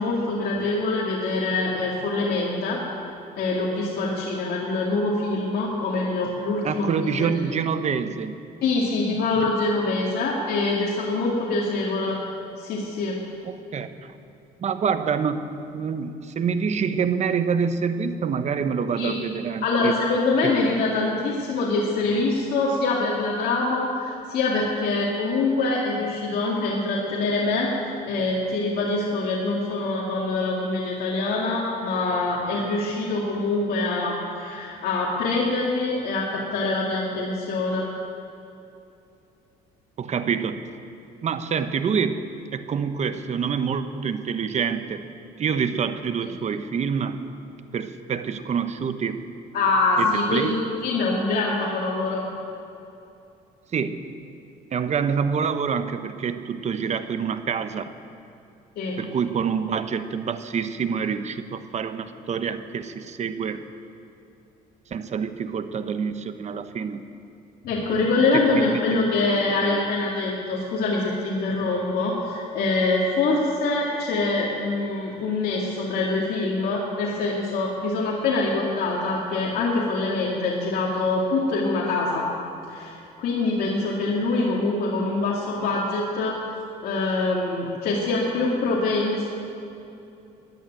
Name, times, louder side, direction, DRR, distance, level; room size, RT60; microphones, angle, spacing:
voice 1, 0.0-2.8 3.4-7.3 8.6-12.2 12.6-13.2 19.0-19.1 19.6-27.7 28.1-37.9 49.5-52.2 58.8-59.0 67.6-82.2 82.7-86.3 86.8-89.3, left 3 dB, 65° left, -4 dB, 2.4 m, -24 dB
voice 2, 6.6-8.3 9.3-9.4 13.4-14.1 14.6-15.5 15.7-19.9 20.4-20.5 40.0-40.6 41.2-42.2 42.5-45.1 45.4-47.2 47.7-49.2 50.0-50.5 53.7-54.0 54.7-58.0 59.0-63.6 64.9-67.1 67.9-68.0 68.3-69.0 69.6-69.8, right 6 dB, 40° right, 10 dB, 1.0 m, -26 dB
15.0 x 10.5 x 9.1 m, 2.8 s
cardioid pair, 110°, 17 cm